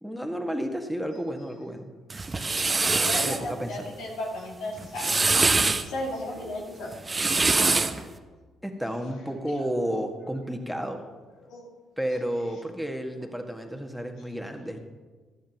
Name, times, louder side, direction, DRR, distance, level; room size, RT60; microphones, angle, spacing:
voice 1, 0.0-1.9 3.2-3.9 8.6-11.1 12.0-14.8, equal, ahead, 5 dB, 1.8 m, -32 dB
sound 1, 2.1-3.4 4.8-5.8 6.9-8.0, right 3 dB, 25° right, 0.8 m, -23 dB
voice 2, 3.0-5.1 5.8-7.0 7.9-8.0 9.9-10.0 11.4-11.7, left 1 dB, 65° left, 0 dB, 2.2 m, -35 dB
15.0 x 12.0 x 3.0 m, 1.4 s
figure-of-eight pair, 45°, 0 cm